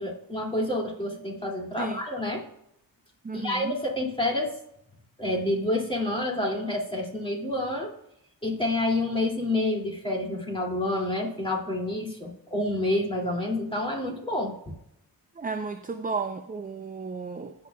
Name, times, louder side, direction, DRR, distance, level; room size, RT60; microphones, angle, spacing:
voice 1, 0.0-2.4 3.3-4.5 5.2-7.9 8.4-14.8, left 1 dB, 15° left, -1 dB, 2.5 m, -28 dB
voice 2, 3.2-3.8 15.4-17.5, right 4 dB, 20° right, 7 dB, 0.5 m, -33 dB
16.5 x 6.2 x 2.3 m, 0.78 s
cardioid pair, 70°, 41 cm